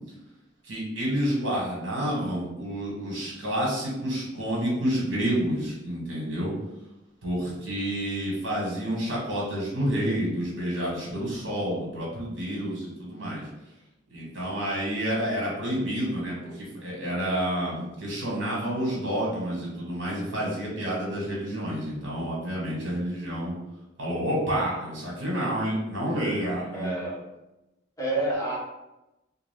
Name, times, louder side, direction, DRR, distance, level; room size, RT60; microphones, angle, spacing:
voice 1, 0.6-6.5 7.2-13.4 14.1-23.5 24.0-26.9, equal, 85° right, -4 dB, 1.2 m, -29 dB
voice 2, 26.7-27.2 28.0-28.6, right 2 dB, 20° left, -5 dB, 0.8 m, -28 dB
2.4 x 2.3 x 3.4 m, 0.95 s
head